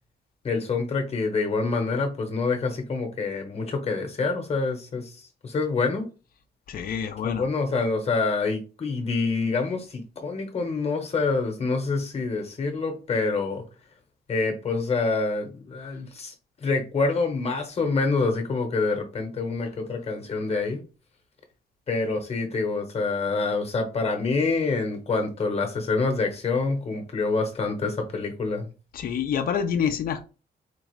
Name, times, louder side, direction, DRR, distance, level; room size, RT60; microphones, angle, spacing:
voice 1, 0.4-5.2 5.4-6.1 7.2-13.6 14.3-16.3 16.6-20.8 21.9-28.7, left 3 dB, 35° left, 0.9 m, -26 dB
voice 2, 6.7-7.5 28.9-30.2, left 7 dB, 55° left, 0.5 m, -27 dB
4.4 x 2.4 x 3.0 m
wide cardioid pair, 175°, 18 cm